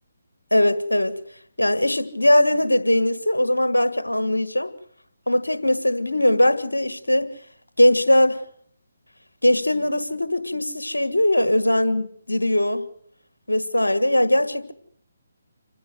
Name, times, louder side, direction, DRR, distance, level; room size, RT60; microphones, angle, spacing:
voice 1, 0.5-1.1 1.6-4.7 5.3-7.3 7.8-8.4 9.4-12.9 13.5-14.7, left 1 dB, 85° left, 1.7 m, -20 dB
27.0 x 15.0 x 7.8 m
figure-of-eight pair, 145°, 0 cm